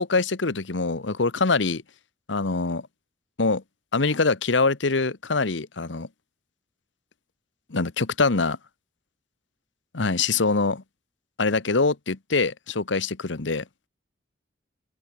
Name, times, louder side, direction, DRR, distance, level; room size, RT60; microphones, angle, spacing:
voice 1, 0.0-1.8 2.3-2.9 3.4-3.6 3.9-6.1 7.7-8.6 9.9-10.8 11.4-13.6, left 3 dB, 75° left, 1.1 m, -24 dB
head